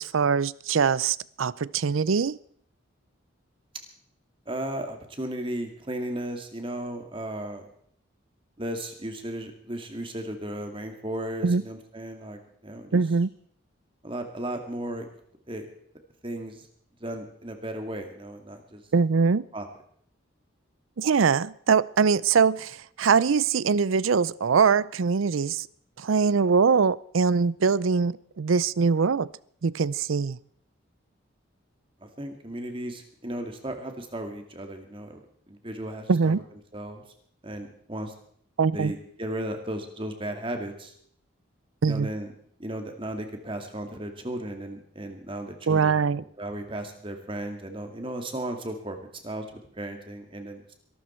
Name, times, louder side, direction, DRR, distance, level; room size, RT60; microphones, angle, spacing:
voice 1, 0.0-2.4 11.4-11.6 12.9-13.3 18.9-19.4 21.0-25.7 26.0-29.3 29.6-30.4 36.1-36.4 38.6-38.9 41.8-42.1 45.7-46.2, right 5 dB, 85° right, 0.5 m, -22 dB
voice 2, 4.5-7.7 8.6-13.0 14.0-15.1 15.5-15.7 16.2-16.7 17.0-18.8 19.5-19.7 32.0-35.2 35.5-36.4 36.7-37.0 37.4-38.1 38.7-40.9 41.9-42.3 42.6-46.0 46.4-50.7, right 1 dB, 25° right, 2.2 m, -35 dB
22.5 x 12.5 x 4.5 m
head